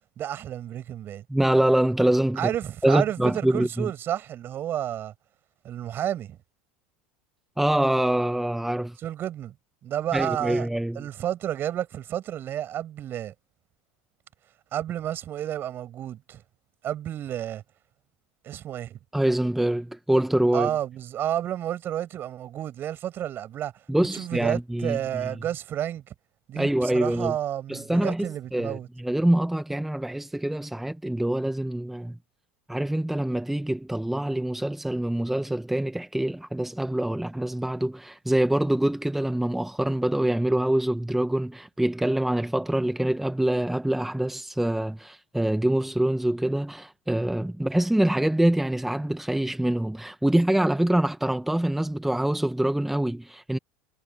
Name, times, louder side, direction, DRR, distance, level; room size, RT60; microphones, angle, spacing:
voice 1, 0.2-1.2 2.4-5.1 5.6-6.4 9.0-9.5 9.8-10.7 10.9-13.3 14.7-16.4 16.8-17.6 18.4-19.0 20.5-23.7 24.1-26.1 26.5-28.9, right 11 dB, 40° right, 6.8 m, -31 dB
voice 2, 1.3-2.5 2.8-3.9 7.6-9.0 10.1-11.1 19.1-20.7 23.9-25.0 26.5-27.3 27.7-32.2 32.7-53.6, right 1 dB, 5° right, 1.4 m, -25 dB
hypercardioid pair, 80°, 6 cm